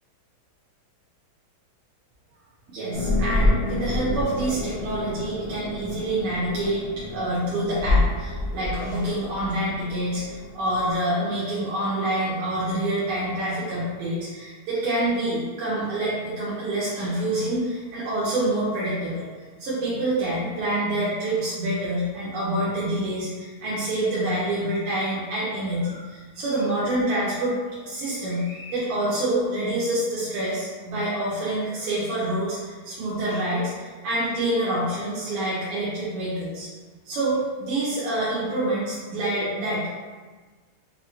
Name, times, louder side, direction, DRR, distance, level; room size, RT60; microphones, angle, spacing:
voice 1, 2.7-19.2 19.6-36.7 37.1-39.9, right 1 dB, 90° right, -9 dB, 1.7 m, -27 dB
sound 1, 2.9-10.9, left 2 dB, 60° left, 1.1 m, -27 dB
6.2 x 2.1 x 2.8 m, 1.4 s
omnidirectional pair, 2.3 m